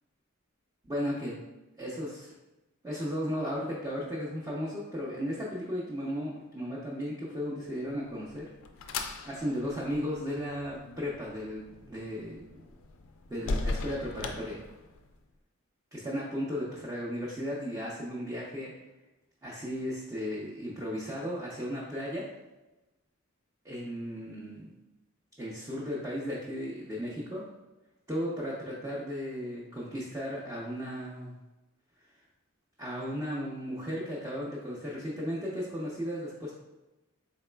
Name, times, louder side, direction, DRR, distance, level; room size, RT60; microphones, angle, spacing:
voice 1, 0.8-1.4 1.8-2.3 2.8-8.5 9.2-12.5 13.3-14.6 15.9-18.7 19.4-22.3 23.6-24.7 25.4-27.5 28.1-31.4 32.8-36.5, equal, 15° right, -7 dB, 0.6 m, -35 dB
sound 1, 7.9-15.2, left 3 dB, 70° left, 0.4 m, -39 dB
4.0 x 3.9 x 2.2 m, 1.0 s
head